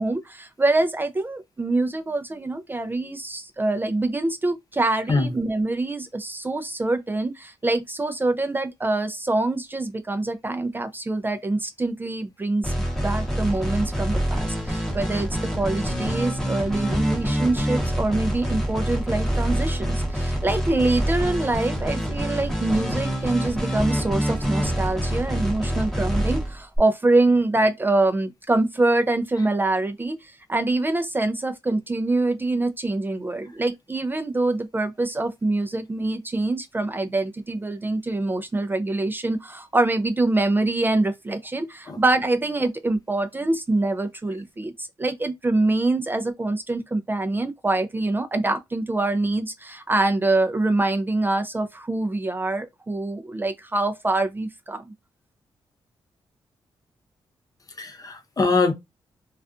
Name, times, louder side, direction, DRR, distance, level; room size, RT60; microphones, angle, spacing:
voice 1, 0.0-15.3 15.5-54.8, right 2 dB, 20° right, 0.4 m, -25 dB
sound 1, 12.6-26.8, equal, 5° left, 0.8 m, -26 dB
voice 2, 57.8-58.7, left 3 dB, 40° left, 0.6 m, -23 dB
2.4 x 2.3 x 2.4 m
cardioid pair, 75°, 10 cm